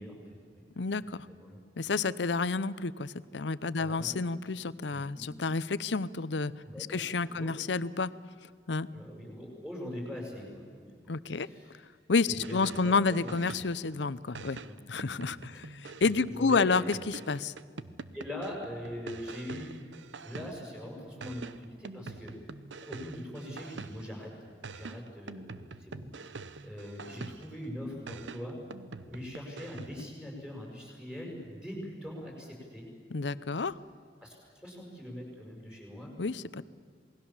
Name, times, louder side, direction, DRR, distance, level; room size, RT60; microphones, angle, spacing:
voice 1, 0.0-0.7 1.3-1.6 3.8-4.1 4.9-5.3 6.6-7.0 7.3-7.6 8.9-10.8 11.3-11.8 12.3-13.4 14.6-14.7 15.5-15.7 16.2-16.8 18.1-19.7 20.2-22.3 22.8-24.3 24.7-28.6 29.1-32.9 34.2-36.1, equal, 5° right, -1 dB, 6.7 m, -42 dB
voice 2, 0.8-1.3 1.8-6.5 6.8-8.1 8.7-8.9 11.1-11.5 12.1-14.6 14.9-17.5 33.1-33.8 36.2-36.6, left 4 dB, 75° left, 17 dB, 0.7 m, -30 dB
sound 1, 12.3-13.9 14.3-20.8 21.2-24.2 24.6-27.6 28.1-30.1, right 3 dB, 90° right, 0.9 m, -45 dB
27.5 x 20.0 x 7.3 m, 2.1 s
head